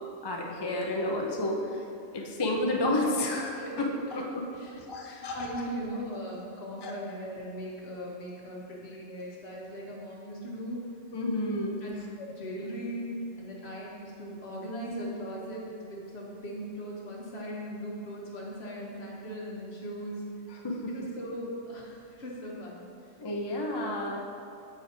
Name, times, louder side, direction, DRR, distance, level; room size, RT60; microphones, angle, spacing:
voice 1, 0.0-1.6 2.1-4.2 4.9-5.4 6.8-6.9 11.1-11.8 20.6-20.7 23.2-24.2, left 1 dB, 30° left, 0 dB, 0.4 m, -30 dB
voice 2, 5.2-10.8 11.8-13.1 13.4-20.2 20.9-22.8, equal, 55° left, -3 dB, 1.4 m, -39 dB
7.0 x 4.9 x 4.3 m, 2.5 s
omnidirectional pair, 1.3 m